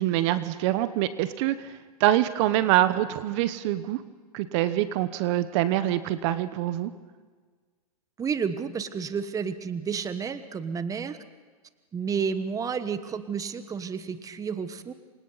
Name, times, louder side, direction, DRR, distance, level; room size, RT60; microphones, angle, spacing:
voice 1, 0.0-4.0 4.3-6.9, right 14 dB, 45° right, 13 dB, 1.1 m, -25 dB
voice 2, 8.2-11.2 11.9-14.9, right 6 dB, 15° right, 11 dB, 1.3 m, -31 dB
28.0 x 24.5 x 4.2 m, 1.5 s
hypercardioid pair, 115°, 20 cm